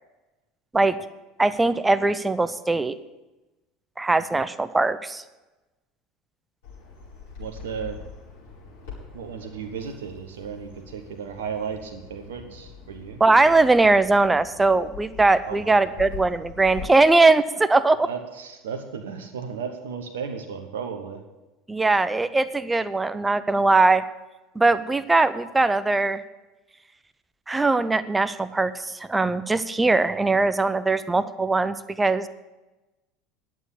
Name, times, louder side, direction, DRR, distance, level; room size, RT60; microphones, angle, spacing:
voice 1, 1.4-3.0 4.0-5.2 13.2-18.1 21.7-24.0 24.6-26.2 27.5-32.3, right 3 dB, 15° right, 15 dB, 0.6 m, -20 dB
Bird vocalization bird call bird song, 6.6-16.9, left 5 dB, 65° left, 5.0 m, -43 dB
voice 2, 7.4-8.0 9.1-13.2 15.4-16.1 18.0-21.2, right 6 dB, 65° right, 6 dB, 1.0 m, -35 dB
11.0 x 7.4 x 8.3 m, 1.1 s
figure-of-eight pair, 70°, 0 cm